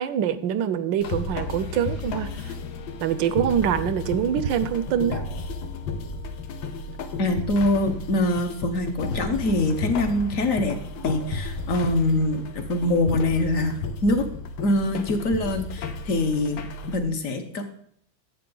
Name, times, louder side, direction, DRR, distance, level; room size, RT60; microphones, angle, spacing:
voice 1, 0.0-2.5 3.0-5.2, right 9 dB, 75° right, 13 dB, 1.3 m, -25 dB
sound 1, 1.0-17.0, left 3 dB, 90° left, 1.6 m, -33 dB
voice 2, 7.2-10.8 11.0-14.3 14.6-17.6, left 1 dB, 50° left, 7 dB, 1.2 m, -24 dB
10.5 x 7.8 x 3.9 m, 0.64 s
omnidirectional pair, 2.1 m